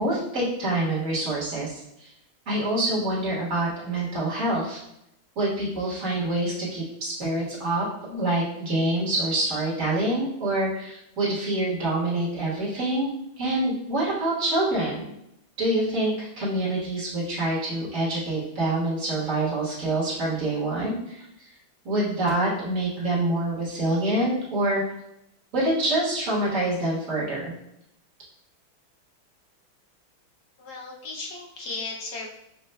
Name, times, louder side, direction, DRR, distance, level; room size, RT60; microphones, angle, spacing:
voice 1, 0.0-2.1 2.5-4.8 5.3-13.1 13.4-15.0 15.6-21.2 21.8-24.8 25.5-27.5, right 1 dB, 45° right, -7 dB, 1.5 m, -26 dB
voice 2, 30.6-32.3, left 3 dB, 70° left, -3 dB, 1.0 m, -35 dB
6.3 x 2.3 x 2.2 m, 0.80 s
omnidirectional pair, 2.3 m